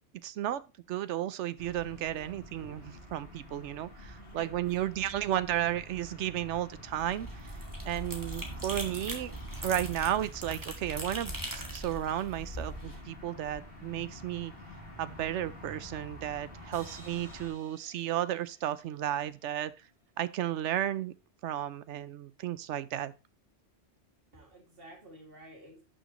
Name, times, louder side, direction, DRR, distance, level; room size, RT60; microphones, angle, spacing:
voice 1, 0.2-0.6 0.9-7.3 7.9-9.3 9.6-14.5 15.0-19.7 20.2-21.1 21.4-23.1, right 12 dB, 90° right, 0.9 m, -33 dB
sound 1, 1.6-17.5, left 1 dB, 55° left, 3.2 m, -47 dB
voice 2, 4.2-4.8 24.3-25.8, right 1 dB, 55° right, 2.6 m, -52 dB
sound 2, 6.9-13.0, right 1 dB, 15° right, 1.8 m, -41 dB
sound 3, 16.7-20.0, right 1 dB, 40° left, 5.5 m, -58 dB
11.5 x 6.4 x 3.0 m
omnidirectional pair, 1.2 m